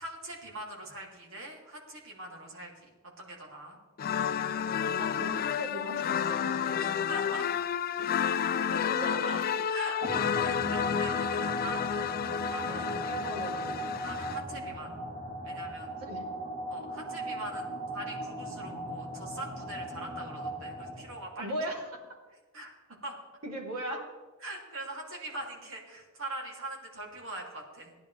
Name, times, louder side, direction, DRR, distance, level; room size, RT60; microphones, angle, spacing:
voice 1, 0.0-2.9 3.2-3.8 6.7-7.7 9.6-10.1 10.3-11.8 12.5-12.9 14.0-14.9 15.4-15.9 16.7-17.7 17.9-21.5 22.5-22.7 23.0-23.1 24.4-28.0, right 1 dB, 65° right, -1 dB, 2.9 m, -42 dB
sound 1, 4.0-14.4, left 8 dB, 40° left, 0.3 m, -31 dB
voice 2, 4.9-7.0 8.6-9.5 12.7-13.7 16.0-16.5 21.4-22.0 23.4-24.0, equal, 85° right, -2 dB, 3.4 m, -39 dB
sound 2, 10.0-21.4, right 1 dB, 45° right, 2.7 m, -38 dB
18.0 x 10.5 x 3.4 m, 1.3 s
head